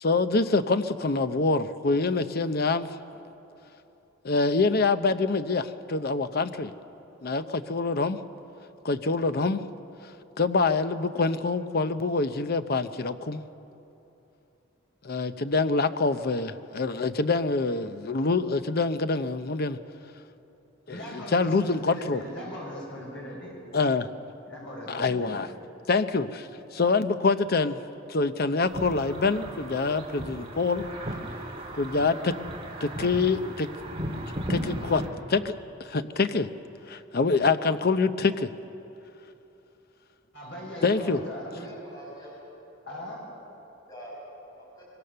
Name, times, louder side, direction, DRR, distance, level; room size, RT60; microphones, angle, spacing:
voice 1, 0.0-3.0 4.2-6.7 7.2-8.2 8.8-9.6 10.4-13.4 15.0-19.8 20.9-22.2 23.7-24.1 24.9-25.5 25.9-27.8 28.1-30.8 31.8-32.4 32.8-33.7 34.5-35.5 35.9-36.5 36.9-38.5 40.8-41.2, left 3 dB, 55° left, 11 dB, 0.7 m, -25 dB
voice 2, 20.9-23.6 24.4-25.5 40.3-41.7 42.9-43.3, equal, 70° left, -3 dB, 6.4 m, -39 dB
sound 1, 28.7-35.1, right 1 dB, 30° right, 2.6 m, -36 dB
voice 3, 40.6-42.4 43.9-44.2 44.5-44.9, equal, 20° left, -5 dB, 6.0 m, -45 dB
23.5 x 23.5 x 6.8 m, 3.0 s
head